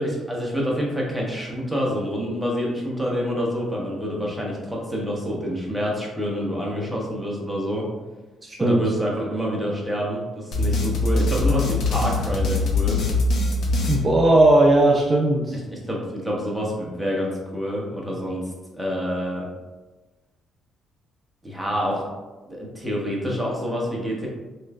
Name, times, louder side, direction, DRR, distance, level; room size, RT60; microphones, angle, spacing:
voice 1, 0.0-7.9 8.6-13.0 15.7-18.4 18.7-19.5 21.4-22.0 22.5-24.3, equal, ahead, -4 dB, 0.9 m, -27 dB
voice 2, 8.4-8.8 13.9-15.6, right 1 dB, 30° right, -2 dB, 0.5 m, -17 dB
sound 1, 10.5-14.8, left 2 dB, 70° left, 0.6 m, -23 dB
3.1 x 3.0 x 2.3 m, 1.2 s
cardioid pair, 90°, 0 cm